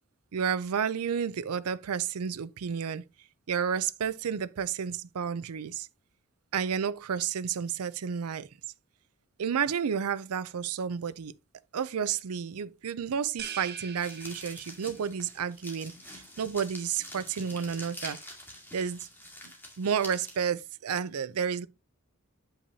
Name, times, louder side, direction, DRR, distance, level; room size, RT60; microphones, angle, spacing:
voice 1, 0.3-3.0 3.5-5.9 6.5-8.5 9.4-11.3 11.7-18.2 18.7-19.1 19.8-21.7, right 7 dB, 85° right, 0.5 m, -31 dB
sound 1, 13.4-15.1, right 7 dB, 50° right, 0.8 m, -42 dB
sound 2, 14.0-20.4, left 1 dB, 10° left, 2.1 m, -46 dB
8.3 x 5.7 x 2.8 m
head